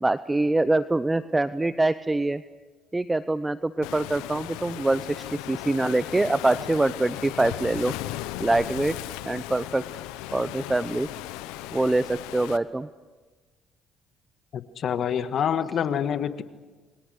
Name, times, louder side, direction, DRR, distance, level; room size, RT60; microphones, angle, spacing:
voice 1, 0.0-2.4 2.9-7.9 8.4-9.0 9.2-9.8 10.3-11.1 11.7-12.9, right 2 dB, 15° right, 13 dB, 0.8 m, -24 dB
Waves surf, 3.8-12.6, left 15 dB, 90° left, 0.8 m, -36 dB
voice 2, 14.5-16.4, left 8 dB, 60° left, 10 dB, 1.6 m, -26 dB
28.0 x 24.0 x 6.5 m, 1.3 s
supercardioid pair, 65°, 0 cm